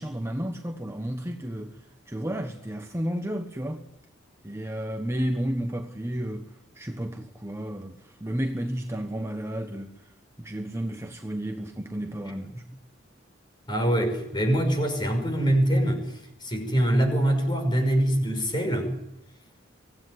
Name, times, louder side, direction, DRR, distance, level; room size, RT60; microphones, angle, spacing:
voice 1, 0.0-1.8 2.1-3.8 4.4-12.6, equal, 15° right, 1.2 m, -32 dB
voice 2, 13.7-18.9, right 1 dB, 25° left, 5.8 m, -24 dB
24.5 x 17.0 x 9.7 m
head